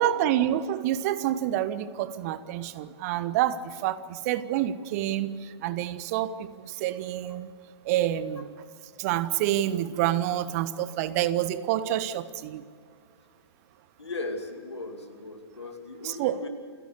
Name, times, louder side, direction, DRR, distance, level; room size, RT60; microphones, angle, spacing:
voice 1, 0.0-7.5 7.8-8.5 9.0-12.6 16.0-16.4, right 12 dB, 35° right, 15 dB, 0.9 m, -28 dB
voice 2, 14.0-16.5, left 2 dB, 75° left, 5 dB, 2.7 m, -37 dB
28.5 x 11.5 x 8.2 m, 2.2 s
figure-of-eight pair, 115°, 14 cm